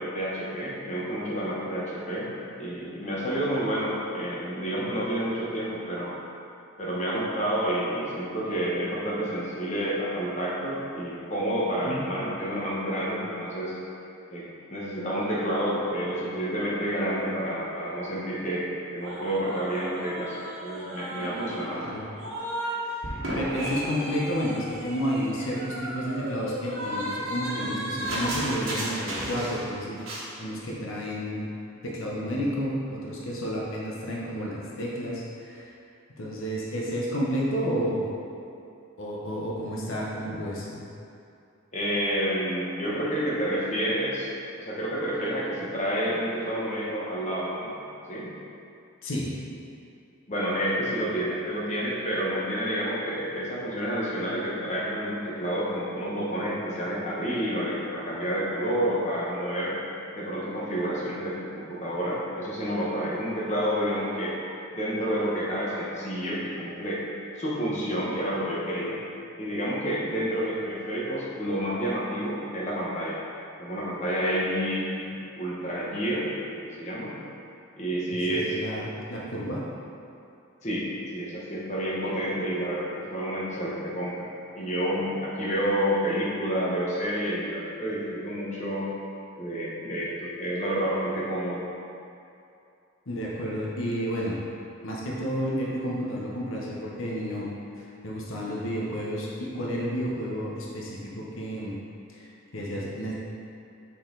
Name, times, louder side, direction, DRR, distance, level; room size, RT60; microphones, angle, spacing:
voice 1, 0.0-2.3 2.6-6.1 6.8-13.7 14.3-21.9 41.7-44.3 44.6-47.7 48.1-48.3 50.3-59.8 60.1-64.4 64.7-67.0 67.4-69.0 69.4-73.2 73.6-76.3 76.5-77.1 77.8-78.8 80.6-80.9 81.1-84.3 84.6-88.9 89.4-91.6, equal, 35° left, -6 dB, 1.1 m, -29 dB
sound 1, 19.0-22.8 23.0-29.7 30.0-30.3, right 1 dB, 80° right, 1.4 m, -34 dB
voice 2, 23.3-30.0 30.4-31.5 31.8-35.7 36.2-38.1 39.0-40.8 49.0-49.3 78.1-79.6 93.1-94.4 94.8-97.5 97.8-101.8 102.1-103.1, equal, 75° left, -4 dB, 0.9 m, -31 dB
6.5 x 4.2 x 3.9 m, 2.6 s
head